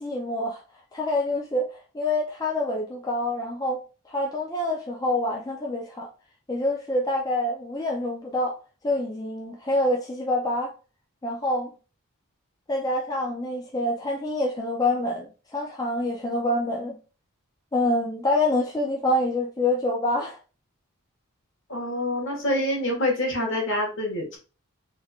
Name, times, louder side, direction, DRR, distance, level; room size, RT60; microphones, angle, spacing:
voice 1, 0.0-0.6 0.9-3.8 4.1-6.1 6.5-8.6 8.8-10.7 11.2-11.7 12.7-17.0 17.7-20.4, left 1 dB, 15° left, 0.4 m, -26 dB
voice 2, 21.7-24.4, left 1 dB, 60° left, 1.5 m, -26 dB
3.7 x 3.2 x 2.3 m
head